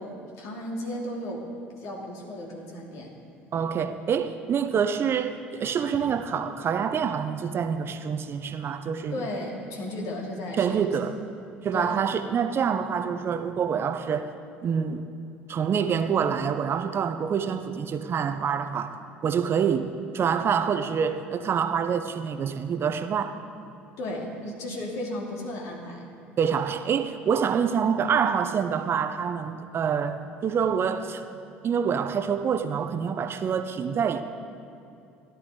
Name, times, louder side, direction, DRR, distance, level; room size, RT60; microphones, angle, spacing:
voice 1, 0.0-1.4 1.8-3.1 9.1-10.9 11.7-11.9 24.0-26.0, left 1 dB, 60° left, 2.7 m, -34 dB
voice 2, 3.5-9.2 10.6-11.2 11.6-14.3 14.6-15.1 15.5-19.0 19.2-23.4 26.4-31.2 31.6-34.2, right 7 dB, 40° right, 0.7 m, -26 dB
16.0 x 11.0 x 3.9 m
hypercardioid pair, 65°, 6 cm